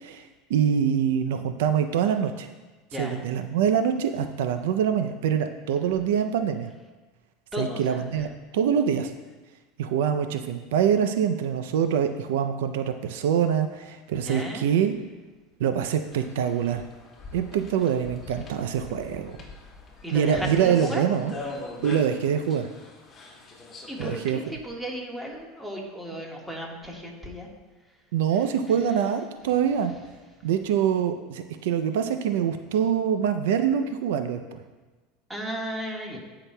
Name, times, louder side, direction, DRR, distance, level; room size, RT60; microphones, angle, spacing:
voice 1, 0.0-2.5 3.0-6.7 7.6-8.3 8.5-9.1 9.8-15.0 15.6-16.8 17.3-19.4 20.1-21.3 21.8-22.7 24.0-24.4 28.1-29.9 30.4-34.6, right 8 dB, 80° right, 8 dB, 0.5 m, -25 dB
voice 2, 7.5-8.3 14.2-14.7 20.0-21.0 21.4-21.5 23.9-27.5 35.3-36.2, equal, 5° right, -2 dB, 1.6 m, -35 dB
sound 1, 16.1-24.3, left 2 dB, 25° left, 1.6 m, -42 dB
16.0 x 5.8 x 2.2 m, 1.3 s
supercardioid pair, 130°, 0 cm